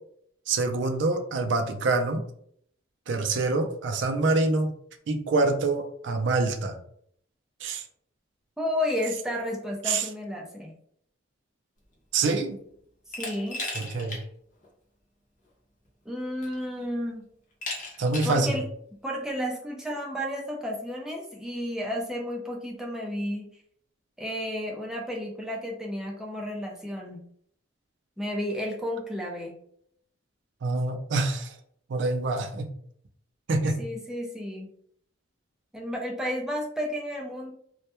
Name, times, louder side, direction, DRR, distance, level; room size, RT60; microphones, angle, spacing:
voice 1, 0.5-2.2 3.1-4.7 5.1-6.8 7.6-7.8 9.8-10.1 12.1-12.6 13.7-14.2 18.0-18.6 30.6-31.5 31.9-32.7 33.5-33.8, right 3 dB, 70° right, 6 dB, 0.4 m, -26 dB
voice 2, 8.6-10.7 13.2-13.6 16.1-17.3 18.2-18.6 19.0-23.5 24.2-27.2 28.2-29.5 33.8-34.7 35.7-37.5, left 1 dB, 5° right, -2 dB, 0.4 m, -32 dB
Glass, 13.1-14.2 14.6-14.7 15.9-16.0 16.4-16.8 17.6-18.4, left 2 dB, 40° left, 0.7 m, -36 dB
2.2 x 2.1 x 2.8 m, 0.67 s
head